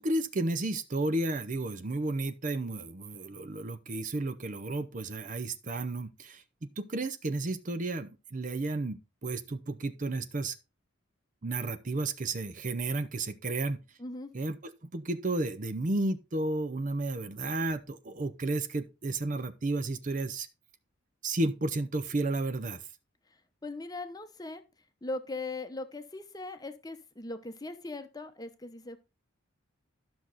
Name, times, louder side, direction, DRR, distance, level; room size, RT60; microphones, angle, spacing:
voice 1, 0.0-10.6 11.4-13.8 14.3-20.5 21.2-22.8, right 2 dB, 40° right, 0.6 m, -32 dB
voice 2, 14.0-14.3 23.6-24.6 25.0-29.0, left 2 dB, 20° left, 0.9 m, -39 dB
12.5 x 6.1 x 4.0 m
head